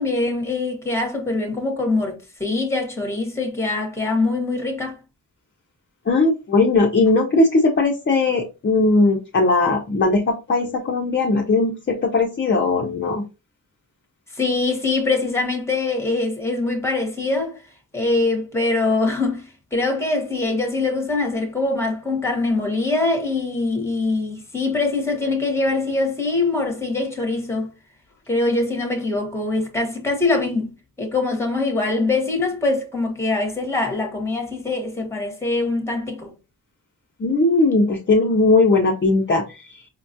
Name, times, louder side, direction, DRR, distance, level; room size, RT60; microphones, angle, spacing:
voice 1, 0.0-5.0 14.3-17.6 17.9-27.7 28.3-36.3, left 3 dB, 5° left, 1.0 m, -23 dB
voice 2, 6.1-13.2 37.2-39.4, left 3 dB, 30° left, 0.5 m, -18 dB
5.0 x 2.3 x 2.6 m
wide cardioid pair, 140°, 36 cm